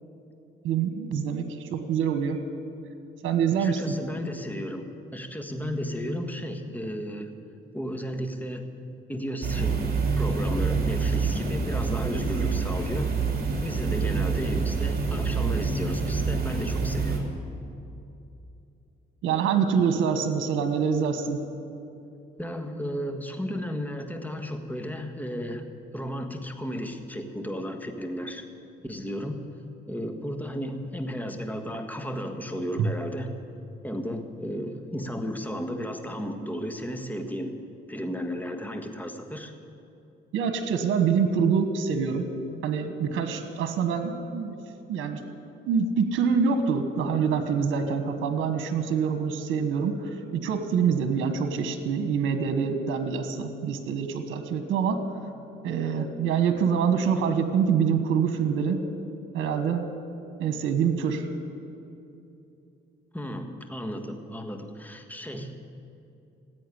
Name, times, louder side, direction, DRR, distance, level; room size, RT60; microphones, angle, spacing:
voice 1, 0.6-2.4 3.2-3.9 19.2-21.4 32.8-32.9 40.3-42.2 42.6-44.5 44.9-45.2 45.7-50.1 50.4-55.0 55.6-58.8 59.3-59.8 60.4-61.3, right 6 dB, 85° right, 8 dB, 1.3 m, -25 dB
voice 2, 3.6-4.8 5.1-7.3 7.7-8.7 9.1-9.8 10.2-13.2 13.6-17.2 22.4-25.6 25.9-28.4 28.8-29.4 29.9-33.4 33.8-37.5 37.9-39.5 63.1-65.5, equal, 10° left, 5 dB, 1.6 m, -34 dB
sound 1, 9.4-17.2, right 4 dB, 50° right, 2.9 m, -26 dB
16.0 x 8.6 x 9.9 m, 2.7 s
cardioid pair, 90°, 20 cm